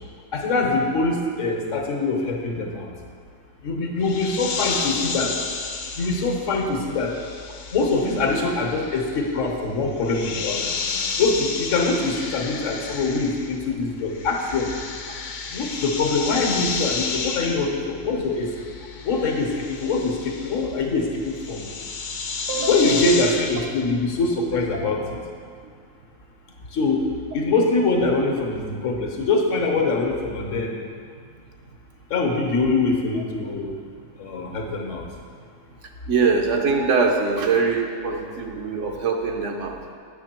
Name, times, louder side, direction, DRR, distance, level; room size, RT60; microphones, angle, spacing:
voice 1, 0.3-2.9 3.6-5.3 6.0-7.1 7.7-10.7 11.2-14.7 15.5-18.5 19.0-21.6 22.7-25.2 26.7-27.1 27.3-30.7 32.1-33.7 34.2-35.0, left 3 dB, 75° left, 1 dB, 1.4 m, -23 dB
sound 1, 4.0-13.7 14.0-23.7, left 4 dB, 55° left, 0.6 m, -32 dB
voice 2, 22.5-23.2 36.1-39.7, right 4 dB, 70° right, 2 dB, 1.1 m, -23 dB
8.3 x 6.0 x 4.4 m, 2.1 s
omnidirectional pair, 1.3 m